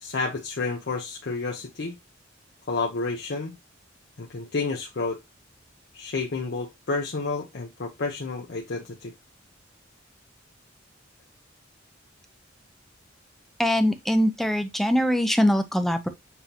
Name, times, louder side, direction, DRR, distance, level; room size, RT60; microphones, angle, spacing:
voice 1, 0.0-1.9 2.7-3.6 4.2-5.2 5.9-9.1, left 3 dB, 60° left, 0.6 m, -30 dB
voice 2, 13.6-16.1, equal, ahead, 0.5 m, -22 dB
7.0 x 2.7 x 2.8 m
head